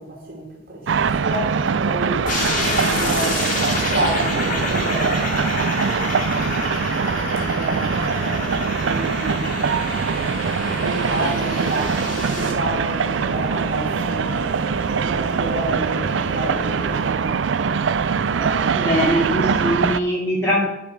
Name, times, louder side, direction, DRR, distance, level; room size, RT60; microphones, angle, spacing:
voice 1, 0.0-2.3 2.6-6.5 7.5-9.4 10.0-14.7 15.0-17.7 18.2-19.1 19.4-19.6, right 1 dB, 50° right, 2.9 m, -31 dB
sound 1, 0.9-20.0, right 6 dB, 75° right, 0.4 m, -23 dB
sound 2, 2.3-12.5, left 2 dB, 45° left, 2.7 m, -27 dB
sound 3, 7.4-17.1, right 1 dB, 60° left, 1.9 m, -34 dB
voice 2, 18.7-20.7, equal, 15° left, 2.8 m, -21 dB
11.5 x 5.1 x 6.3 m
head